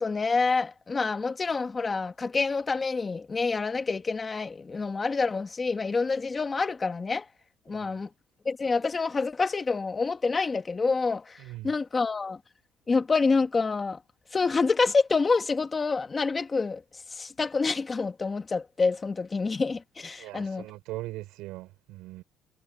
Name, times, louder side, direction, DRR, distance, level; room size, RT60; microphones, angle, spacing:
voice 1, 0.0-7.3 7.7-8.1 8.4-12.4 12.9-14.0 14.3-16.8 17.1-20.7, left 4 dB, 20° left, 1.7 m, -27 dB
voice 2, 20.2-22.2, right 18 dB, 85° right, 5.2 m, -40 dB
cardioid pair, 140°, 0 cm